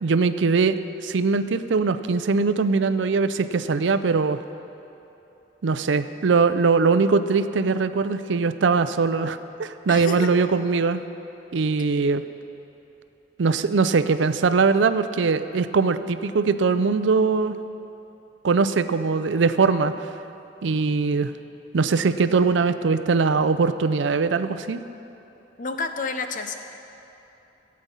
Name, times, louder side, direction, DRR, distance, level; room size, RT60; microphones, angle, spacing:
voice 1, 0.0-4.4 5.6-11.0 11.5-12.2 13.4-17.6 18.4-20.1 20.6-21.3 21.7-24.8, right 4 dB, 85° right, 12 dB, 0.5 m, -21 dB
voice 2, 9.9-10.3 25.6-26.6, left 3 dB, 45° left, 7 dB, 0.7 m, -29 dB
15.5 x 8.7 x 5.5 m, 3.0 s
head